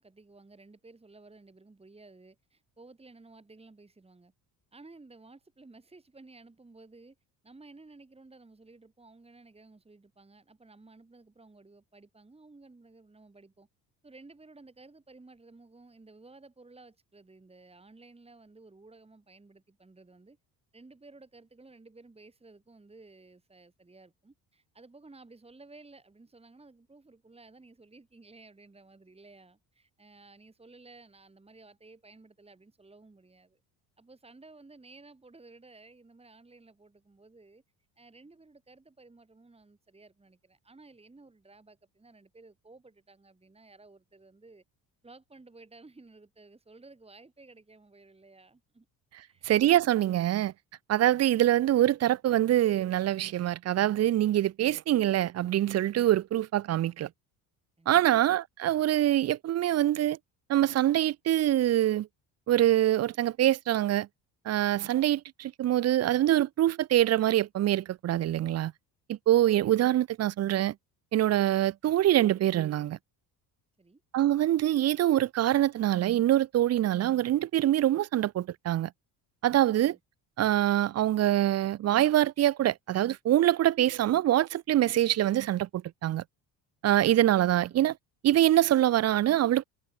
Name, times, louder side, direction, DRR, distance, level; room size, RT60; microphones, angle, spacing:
voice 1, 0.0-4.3 4.7-7.1 7.4-13.7 14.0-20.4 20.7-33.6 34.0-37.6 38.0-44.6 45.0-48.9 49.1-49.5 57.8-58.0 73.8-74.0, right 3 dB, 15° right, 3.1 m, -55 dB
voice 2, 49.4-50.5 50.9-57.1 57.9-60.2 60.5-62.1 62.5-64.1 64.5-68.7 69.1-70.7 71.1-73.0 74.1-78.9 79.4-80.0 80.4-86.2 86.8-88.0 88.2-89.6, right 13 dB, 40° right, 0.5 m, -24 dB
cardioid pair, 95°, 40 cm